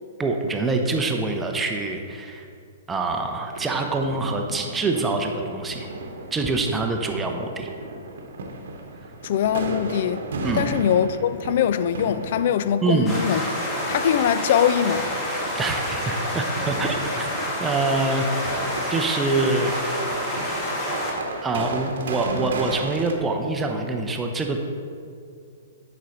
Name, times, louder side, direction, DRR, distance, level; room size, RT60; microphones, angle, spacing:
voice 1, 0.2-2.5 2.9-5.9 6.3-7.7 10.4-10.6 12.8-13.2 15.5-17.2 17.6-18.3 18.6-19.7 21.4-24.6, right 3 dB, 15° right, 0.6 m, -25 dB
sound 1, 3.5-23.1, right 2 dB, 55° right, 1.0 m, -35 dB
voice 2, 9.2-10.2 10.5-13.4 13.8-15.1, left 9 dB, 50° left, 0.3 m, -22 dB
sound 2, 13.1-21.1, equal, 20° left, 2.1 m, -28 dB
10.5 x 5.1 x 4.1 m
figure-of-eight pair, 115°, 0 cm